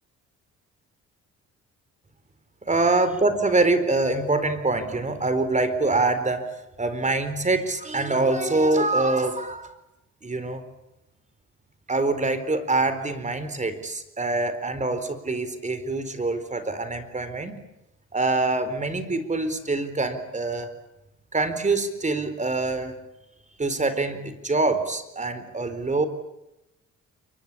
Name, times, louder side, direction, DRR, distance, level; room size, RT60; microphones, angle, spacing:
voice 1, 2.6-6.5 6.8-9.7 10.2-10.6 11.9-17.6 18.1-20.7 21.3-22.9 23.6-26.1, right 2 dB, 25° right, 11 dB, 4.2 m, -25 dB
29.0 x 24.0 x 8.7 m, 0.89 s
cardioid pair, 90°, 30 cm